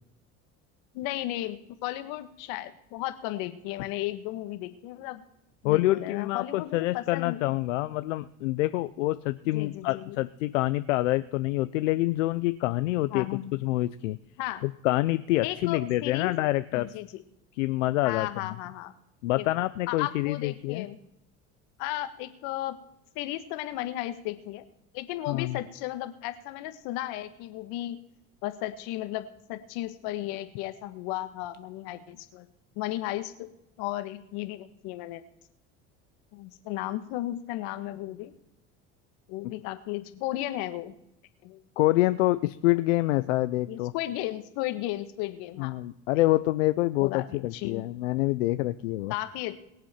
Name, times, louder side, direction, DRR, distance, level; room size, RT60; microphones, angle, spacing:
voice 1, 0.9-5.2 5.6-7.4 9.4-10.2 13.1-13.6 14.4-14.7 15.4-16.3 16.7-17.2 18.0-18.9 19.4-19.5 19.9-21.0 21.8-22.8 23.1-24.6 24.9-28.0 28.4-32.5 32.7-33.5 33.8-35.2 36.3-38.3 39.3-41.0 41.4-41.6 43.7-45.7 47.0-47.8 49.1-49.5, left 15 dB, 75° left, 11 dB, 1.5 m, -34 dB
voice 2, 5.6-13.3 13.6-14.2 14.6-16.9 17.6-18.3 19.2-20.9 25.3-25.6 41.8-43.9 45.6-49.1, left 18 dB, 90° left, 13 dB, 0.6 m, -26 dB
23.0 x 7.6 x 4.4 m, 0.82 s
supercardioid pair, 80°, 37 cm